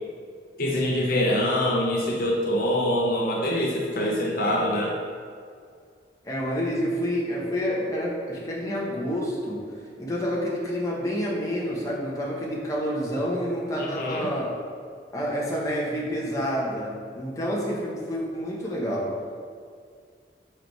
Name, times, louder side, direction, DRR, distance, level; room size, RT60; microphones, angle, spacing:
voice 1, 0.6-5.0 13.8-14.3, left 1 dB, 55° left, -3 dB, 0.8 m, -24 dB
voice 2, 6.2-9.6 10.0-14.5 15.1-19.1, equal, 20° left, -5 dB, 1.1 m, -28 dB
4.9 x 4.7 x 4.7 m, 2.2 s
head